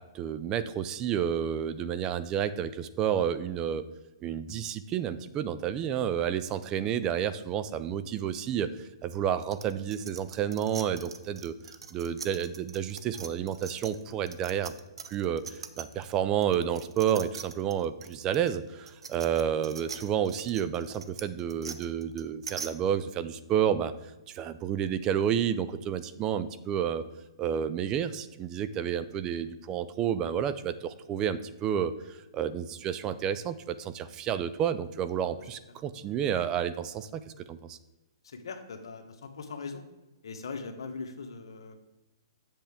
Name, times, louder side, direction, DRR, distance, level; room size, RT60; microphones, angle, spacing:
voice 1, 0.0-3.8 4.2-11.5 11.9-14.7 15.1-23.9 24.3-27.0 27.4-37.8, right 9 dB, 25° right, 14 dB, 0.4 m, -30 dB
sound 1, 9.5-16.1 16.4-22.7, right 6 dB, 80° right, 0.7 m, -42 dB
voice 2, 38.2-39.8 40.2-41.8, left 4 dB, 75° left, 6 dB, 1.2 m, -40 dB
7.8 x 6.7 x 3.5 m, 1.0 s
hypercardioid pair, 140°, 3 cm